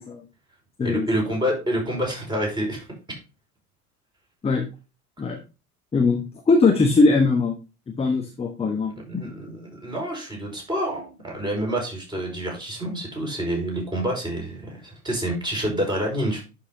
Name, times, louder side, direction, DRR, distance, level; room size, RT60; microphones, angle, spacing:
voice 1, 0.8-2.8 9.0-16.4, right 1 dB, 10° right, -1 dB, 5.2 m, -27 dB
voice 2, 5.9-7.5 8.0-9.2, left 3 dB, 15° left, 4 dB, 1.3 m, -20 dB
11.5 x 5.9 x 2.8 m, 0.30 s
figure-of-eight pair, 85°, 46 cm